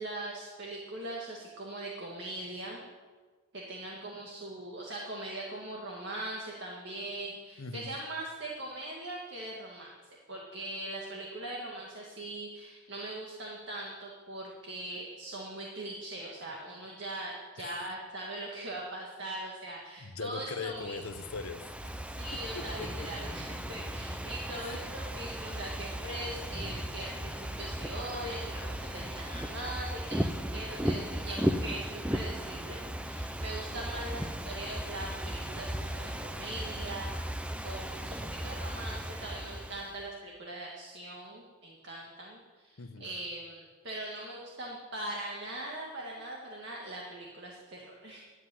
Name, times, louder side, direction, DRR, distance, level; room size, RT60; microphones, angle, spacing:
voice 1, 0.0-2.8 3.5-9.9 10.3-21.0 22.0-37.1 37.6-48.2, right 1 dB, 55° right, -2 dB, 2.0 m, -41 dB
voice 2, 7.6-7.9 17.6-17.8 20.0-22.0 22.5-22.9 24.6-24.8 42.8-43.1, left 4 dB, 85° left, 8 dB, 0.9 m, -40 dB
Ocean / Fireworks, 20.7-40.0, equal, 5° right, 0.5 m, -36 dB
sound 1, 22.4-29.1, equal, 15° left, 0.9 m, -49 dB
11.0 x 7.9 x 9.9 m, 1.4 s
head